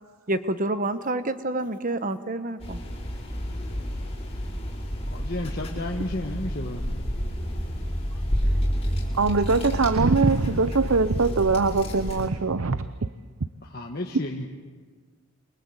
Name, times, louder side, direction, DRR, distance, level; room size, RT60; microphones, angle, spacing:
voice 1, 0.3-2.8, right 2 dB, 40° right, 11 dB, 1.2 m, -28 dB
sound 1, 2.6-12.3, equal, 25° left, 5.5 m, -30 dB
voice 2, 5.1-7.0 13.6-14.4, left 1 dB, 45° left, 0 dB, 1.5 m, -32 dB
voice 3, 9.2-12.8, right 4 dB, 70° right, 13 dB, 0.7 m, -22 dB
28.5 x 23.5 x 8.1 m, 1.5 s
head